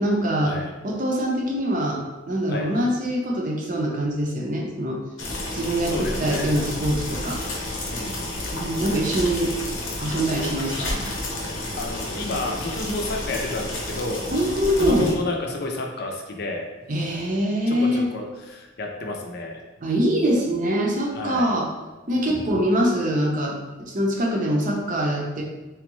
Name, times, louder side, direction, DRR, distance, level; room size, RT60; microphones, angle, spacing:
voice 1, 0.0-0.5 0.8-2.0 2.3-5.0 5.5-7.4 8.5-9.6 10.0-11.1 14.3-15.1 16.9-18.1 19.8-21.7 22.1-25.4, equal, 45° right, -1 dB, 0.6 m, -24 dB
sound 1, 5.2-15.1, left 1 dB, 90° left, 0.8 m, -30 dB
voice 2, 5.2-5.6 5.9-6.5 7.9-8.3 11.7-14.3 14.8-16.6 17.7-19.6 21.1-21.5, left 2 dB, 55° left, 1 dB, 0.5 m, -31 dB
3.6 x 3.2 x 3.0 m, 1.1 s
head